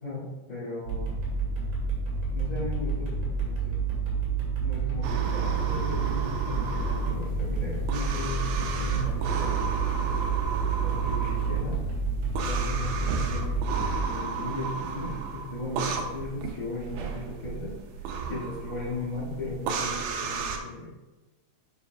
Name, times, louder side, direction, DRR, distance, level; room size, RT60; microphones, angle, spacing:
voice 1, 0.0-1.2 2.3-3.8 4.6-9.7 10.8-11.8 12.5-17.7 18.3-20.9, left 2 dB, 30° left, -8 dB, 2.4 m, -36 dB
sound 1, 0.9-14.0, right 5 dB, 65° right, 3.4 m, -29 dB
sound 2, 5.0-20.6, right 5 dB, 85° right, 2.1 m, -34 dB
9.1 x 5.5 x 2.3 m, 1.1 s
omnidirectional pair, 3.7 m